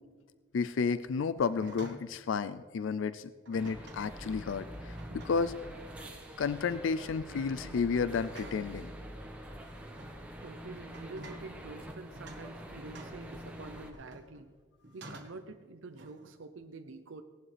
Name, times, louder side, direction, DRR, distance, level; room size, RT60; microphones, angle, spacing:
voice 1, 0.5-5.6 6.4-8.9, left 5 dB, 70° left, 14 dB, 0.4 m, -32 dB
sound 1, 1.4-2.1 3.5-4.1 4.8-5.6 6.0-6.3 6.8-7.2 8.3-8.7 9.5-10.2 10.9-11.5 12.1-12.5 13.0-14.4 14.8-15.5 16.0-16.4, right 2 dB, 55° right, 1.4 m, -50 dB
sound 2, 3.5-13.9, equal, 5° right, 1.3 m, -45 dB
voice 2, 10.4-14.5 14.9-17.2, right 3 dB, 70° right, 7 dB, 0.6 m, -47 dB
17.5 x 11.0 x 3.4 m, 1.5 s
head